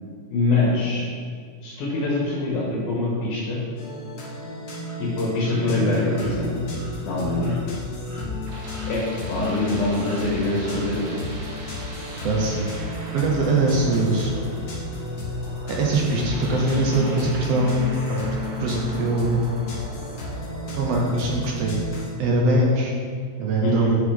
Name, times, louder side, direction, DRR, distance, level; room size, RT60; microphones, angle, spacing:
voice 1, 0.3-1.1 1.6-3.6 5.0-6.7 7.0-7.5 8.9-11.2 23.6-23.9, left 2 dB, 80° left, -5 dB, 2.7 m, -24 dB
sound 1, 3.8-22.1, left 1 dB, 65° left, 2.6 m, -33 dB
sound 2, 4.8-4.9 5.4-5.6 6.1-6.3 6.7-6.9 7.4-7.6 8.0-8.3 8.7-9.1 9.4-9.6 10.0-10.2 10.6-10.9, right 1 dB, 25° right, 1.2 m, -45 dB
sound 3, 8.0-21.6, right 2 dB, 85° right, 2.6 m, -42 dB
voice 2, 12.2-12.6 13.1-14.3 15.7-19.4 20.8-21.8 22.2-22.9 23.4-24.0, right 2 dB, 70° right, -1 dB, 1.6 m, -22 dB
7.9 x 5.7 x 3.4 m, 2.1 s
omnidirectional pair, 3.4 m